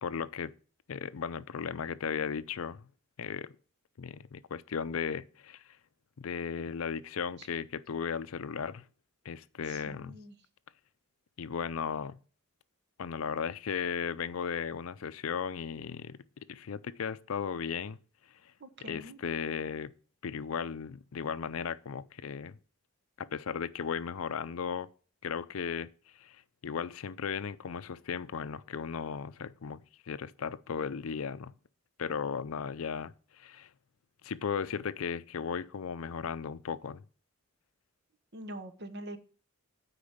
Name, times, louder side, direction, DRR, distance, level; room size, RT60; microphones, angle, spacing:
voice 1, 0.0-0.5 0.9-2.8 3.2-3.5 4.0-5.6 6.2-8.8 9.2-10.2 11.4-12.2 13.0-16.2 16.5-18.0 18.9-19.9 20.2-22.6 23.2-24.9 25.2-25.9 26.2-31.5 32.0-33.7 34.2-37.0, left 6 dB, 75° left, 0.5 m, -36 dB
voice 2, 9.6-10.4 18.6-19.2 38.3-39.2, right 1 dB, 55° right, 1.1 m, -44 dB
8.6 x 4.9 x 6.5 m
head